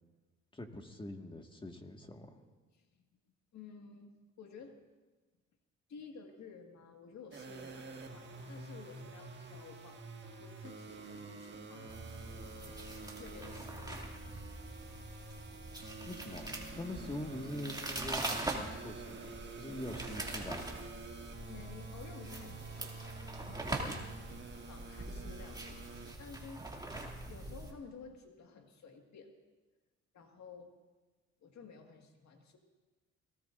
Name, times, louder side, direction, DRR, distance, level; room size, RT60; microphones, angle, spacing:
voice 1, 0.5-2.4 16.0-20.7, left 1 dB, 15° left, 3 dB, 1.9 m, -44 dB
voice 2, 2.7-3.1 3.5-4.8 5.9-10.0 10.4-11.9 13.2-14.0 15.7-15.9 21.5-24.0 24.6-26.7 27.3-29.3 30.1-30.7 31.4-32.6, left 5 dB, 65° left, 3 dB, 2.0 m, -53 dB
sound 1, 7.3-26.1, right 3 dB, 35° right, 1.9 m, -49 dB
sound 2, 11.9-27.7, right 2 dB, 15° right, 2.5 m, -43 dB
28.5 x 19.0 x 2.6 m, 1.3 s
cardioid pair, 90°, 30 cm